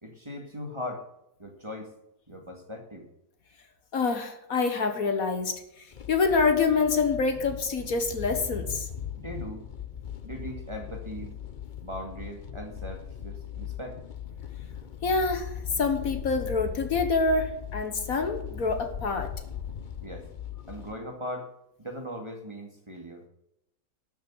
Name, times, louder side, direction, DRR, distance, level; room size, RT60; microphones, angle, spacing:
voice 1, 0.0-1.1 1.4-1.9 2.3-3.1 9.2-9.7 10.2-11.4 11.8-14.0 20.0-20.3 20.7-21.5 21.8-23.3, equal, 20° right, 2 dB, 2.1 m, -39 dB
voice 2, 3.9-5.6 6.1-8.9 15.0-19.3, left 4 dB, 65° left, 7 dB, 1.7 m, -26 dB
sound 1, 5.9-20.9, left 9 dB, 40° left, 0.7 m, -39 dB
12.5 x 6.9 x 7.7 m, 0.83 s
omnidirectional pair, 1.7 m